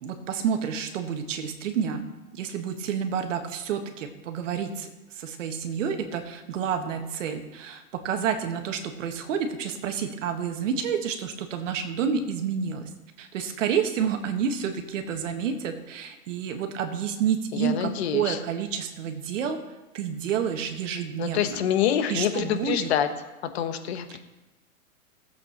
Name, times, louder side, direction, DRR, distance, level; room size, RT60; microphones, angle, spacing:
voice 1, 0.0-2.1 2.3-12.9 13.2-19.6 19.9-21.6 22.1-22.9 24.1-24.2, right 7 dB, 60° right, 6 dB, 1.5 m, -29 dB
voice 2, 17.5-18.4 21.2-23.1 23.4-24.2, left 10 dB, 45° left, 8 dB, 1.2 m, -26 dB
14.5 x 7.9 x 4.4 m, 1.1 s
hypercardioid pair, 150°, 43 cm